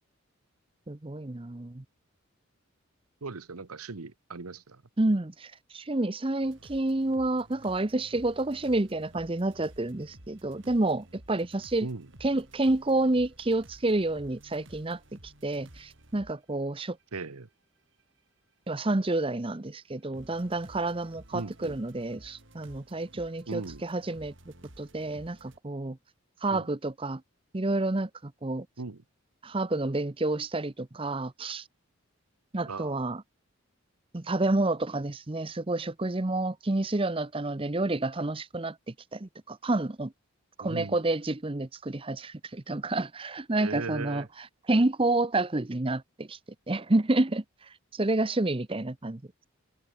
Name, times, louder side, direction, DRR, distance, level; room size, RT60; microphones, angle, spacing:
voice 1, 0.9-1.8 5.0-11.9 12.2-17.0 18.7-24.3 24.8-26.0 26.4-27.2 27.5-28.7 29.4-31.6 32.5-33.2 34.1-38.8 39.1-40.1 40.6-44.2 44.7-46.4 46.7-47.4 47.9-49.2, right 2 dB, 25° right, 0.7 m, -29 dB
voice 2, 3.2-4.8 11.8-12.1 17.1-17.5 21.3-21.8 23.5-23.8 26.5-26.7 28.8-29.0 32.7-33.0 40.6-41.1 43.6-44.3, right 3 dB, 90° right, 1.1 m, -38 dB
sound 1, 6.4-16.3 17.0-17.1 18.0-18.1 20.1-25.6, right 1 dB, 55° right, 3.7 m, -53 dB
head